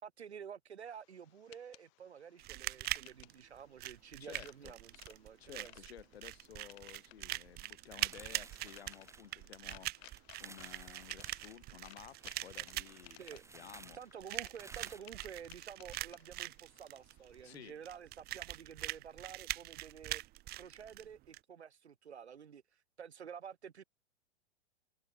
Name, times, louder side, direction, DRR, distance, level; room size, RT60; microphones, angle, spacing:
voice 1, 0.0-5.7 13.2-13.4 13.9-20.2 20.5-23.8, right 7 dB, 75° right, 1.7 m, -50 dB
sound 1, 0.9-17.6, left 36 dB, 40° left, 2.5 m, -61 dB
sound 2, 2.4-21.4, right 18 dB, 30° right, 1.3 m, -43 dB
voice 2, 4.2-4.7 5.4-14.0 17.4-17.8, left 10 dB, 65° left, 1.1 m, -54 dB
sound 3, 8.0-9.8 10.2-11.6 12.1-15.0, right 3 dB, 10° right, 5.1 m, -56 dB
figure-of-eight pair, 105°, 33 cm